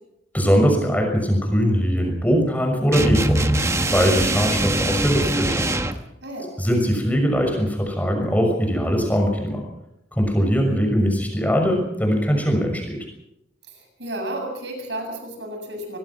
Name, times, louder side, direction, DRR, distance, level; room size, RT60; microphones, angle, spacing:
voice 1, 0.3-5.7 6.6-9.6 10.2-13.0, equal, 10° left, 2 dB, 6.2 m, -21 dB
sound 1, 2.9-6.0, right 1 dB, 15° right, 1.2 m, -22 dB
voice 2, 6.2-6.5 13.7-16.0, right 1 dB, 70° right, 4 dB, 7.5 m, -32 dB
24.0 x 21.0 x 6.0 m, 0.83 s
head